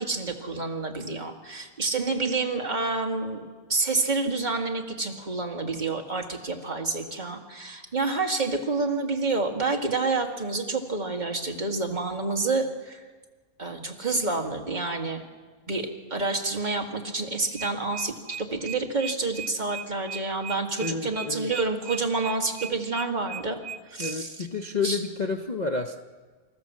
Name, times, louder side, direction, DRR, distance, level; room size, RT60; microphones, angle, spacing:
voice 1, 0.0-13.0 13.6-15.2 15.7-23.6 23.9-24.3 24.8-25.0, right 3 dB, 30° right, 3 dB, 2.0 m, -28 dB
sound 1, 17.6-24.2, right 7 dB, 60° right, 1.0 m, -38 dB
voice 2, 20.8-21.5 24.0-26.0, left 4 dB, 35° left, 5 dB, 0.7 m, -30 dB
26.0 x 14.0 x 7.4 m, 1.4 s
omnidirectional pair, 1.6 m